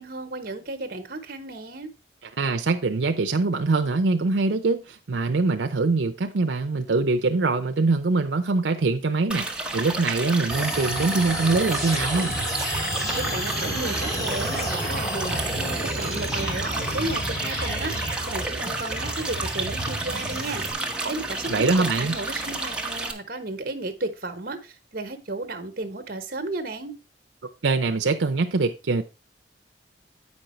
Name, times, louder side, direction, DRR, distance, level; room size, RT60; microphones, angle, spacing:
voice 1, 0.0-1.9 13.1-17.9 18.3-20.6 21.1-21.7 21.9-26.9, right 2 dB, 55° right, 1.1 m, -33 dB
voice 2, 2.4-9.5 9.7-12.3 21.5-22.1 27.6-29.0, right 3 dB, 85° right, 0.6 m, -23 dB
sound 1, 9.3-23.1, right 2 dB, 5° right, 1.0 m, -31 dB
sound 2, 10.5-20.7, equal, 20° left, 1.9 m, -30 dB
8.5 x 5.3 x 4.3 m
head